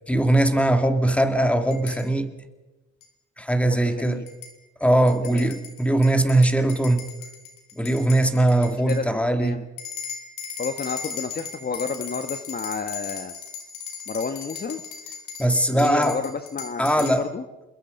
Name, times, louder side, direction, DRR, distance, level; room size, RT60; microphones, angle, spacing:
voice 1, 0.1-2.3 3.4-4.2 4.8-7.0 7.7-9.6 15.4-16.2 16.8-17.2, right 1 dB, 5° left, 8 dB, 2.4 m, -20 dB
sound 1, 1.7-2.1 3.0-3.1 4.0-4.5 5.1-9.0 9.8-17.2, left 7 dB, 90° left, 5.2 m, -37 dB
voice 2, 3.7-4.2 5.2-5.5 8.9-9.6 10.6-13.4 14.1-14.8 15.7-17.4, left 5 dB, 30° left, 9 dB, 1.3 m, -31 dB
28.0 x 22.0 x 5.3 m, 1.1 s
cardioid pair, 90°, 30 cm